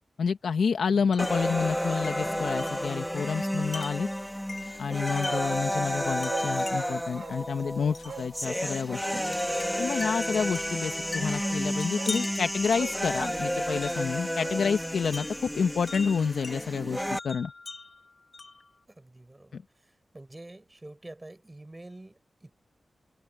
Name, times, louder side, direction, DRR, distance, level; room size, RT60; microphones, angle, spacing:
voice 1, 0.2-4.1 4.8-9.1 9.8-17.5 19.5-19.6, left 6 dB, 85° left, 2.1 m, -29 dB
Wind chime, 1.1-1.5 2.0-5.6 6.2-7.1 7.9-8.2 9.3-14.2 15.1-16.6 17.2-18.7, left 3 dB, 40° left, 2.0 m, -42 dB
sound 1, 1.2-17.2, equal, ahead, 3.4 m, -31 dB
Bark, 5.2-5.5 5.8-5.9 6.2-6.5 7.1-7.4 8.0-8.3 9.0-9.3 10.9-11.0 11.4-11.6 11.9-12.2 12.7-13.0 13.6-14.6 14.9-15.0, right 6 dB, 85° right, 3.9 m, -41 dB
voice 2, 18.9-22.5, right 2 dB, 20° right, 5.7 m, -48 dB
wide cardioid pair, 90°, 0 cm